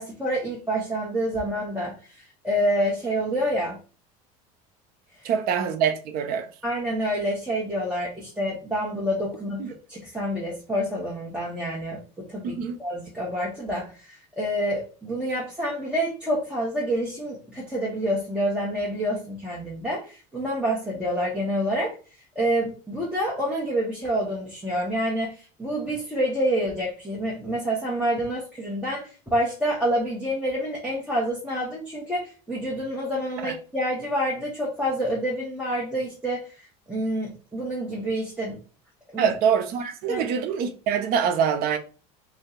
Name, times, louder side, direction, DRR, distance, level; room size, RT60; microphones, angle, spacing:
voice 1, 0.0-3.8 5.2-5.3 6.6-21.9 22.3-38.6 39.1-39.3 40.1-40.3, equal, 5° right, 0.9 m, -28 dB
voice 2, 5.2-6.5 9.6-9.7 12.4-12.8 33.4-33.5 39.2-41.8, right 7 dB, 60° right, 0.7 m, -24 dB
2.6 x 2.2 x 3.7 m
supercardioid pair, 110°, 18 cm